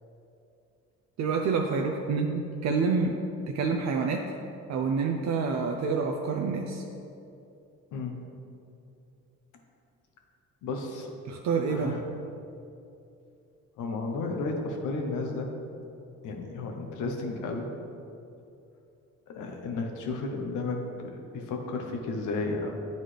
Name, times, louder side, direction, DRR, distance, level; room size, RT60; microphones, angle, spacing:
voice 1, 1.2-3.2 3.5-4.2 4.7-6.8 11.3-12.0, right 5 dB, 65° right, 2 dB, 0.5 m, -27 dB
voice 2, 7.9-8.2 10.6-12.0 13.8-15.5 16.2-17.7 19.3-22.7, left 3 dB, 85° left, 2 dB, 0.9 m, -33 dB
9.5 x 4.0 x 3.3 m, 2.7 s
cardioid pair, 90°, 30 cm